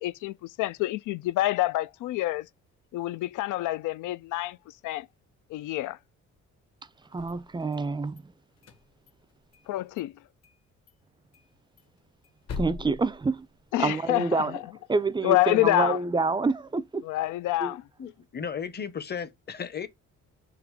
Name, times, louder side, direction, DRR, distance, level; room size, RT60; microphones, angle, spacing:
voice 1, 0.0-2.5 2.9-4.6 4.8-5.1 5.5-6.0 9.7-10.1 13.7-14.6 15.2-16.0 17.0-17.8, left 16 dB, 80° left, 0.5 m, -27 dB
sound 1, 7.0-8.2 8.6-9.7 10.0-10.1 10.4-10.6 10.9-11.0 11.3-13.9, left 4 dB, 55° left, 1.4 m, -42 dB
voice 2, 7.1-8.3 12.6-13.5 13.8-14.6 14.9-17.1 17.6-17.7, right 3 dB, 15° right, 0.4 m, -27 dB
voice 3, 18.0-19.9, left 7 dB, 35° left, 0.9 m, -35 dB
3.8 x 2.9 x 4.6 m
cardioid pair, 90°, 30 cm